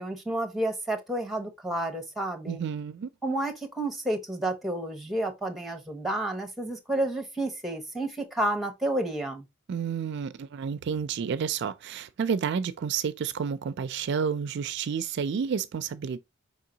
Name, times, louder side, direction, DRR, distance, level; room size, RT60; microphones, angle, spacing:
voice 1, 0.0-2.6 3.2-9.4, right 1 dB, ahead, 1.1 m, -30 dB
voice 2, 2.5-3.1 9.7-16.2, right 6 dB, 60° right, 0.4 m, -30 dB
5.3 x 3.7 x 2.7 m
head